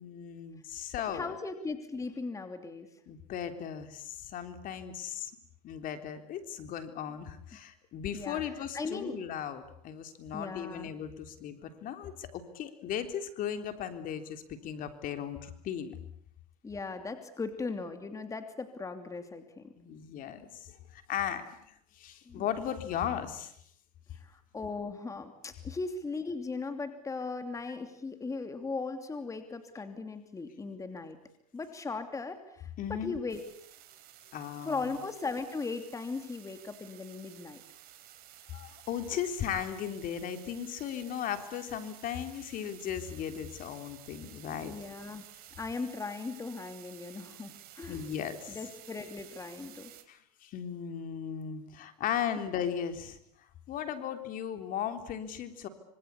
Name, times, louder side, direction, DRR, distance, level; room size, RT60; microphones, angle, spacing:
voice 1, 0.0-1.3 3.1-5.3 5.6-16.0 19.8-23.5 32.8-33.2 34.3-34.9 38.5-44.7 47.9-48.6 50.1-53.2 53.7-55.7, left 9 dB, 45° left, 8 dB, 3.7 m, -37 dB
voice 2, 1.1-2.9 8.1-9.2 10.3-10.9 16.6-19.7 22.2-22.4 24.2-31.2 31.5-33.4 34.6-37.6 44.6-45.3 45.6-48.0 48.5-49.9, left 4 dB, 15° left, 8 dB, 2.9 m, -38 dB
sound 1, 33.3-50.0, right 13 dB, 50° right, 4.3 m, -53 dB
26.0 x 25.5 x 8.4 m, 0.68 s
hypercardioid pair, 105°, 20 cm